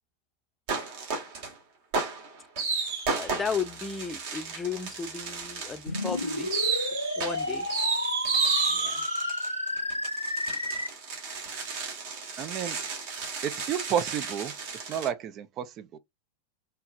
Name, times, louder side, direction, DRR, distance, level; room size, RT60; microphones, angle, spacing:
sound 1, 0.7-1.5 1.9-15.1, right 5 dB, 50° right, 1.9 m, -32 dB
voice 1, 3.2-6.5 7.2-7.7 8.7-9.0, left 6 dB, 15° left, 0.7 m, -34 dB
sound 2, 5.9-10.9, left 1 dB, 85° left, 0.4 m, -31 dB
voice 2, 12.4-12.8 13.4-16.0, right 9 dB, 35° right, 0.6 m, -32 dB
4.5 x 3.2 x 2.6 m
figure-of-eight pair, 90°, 0 cm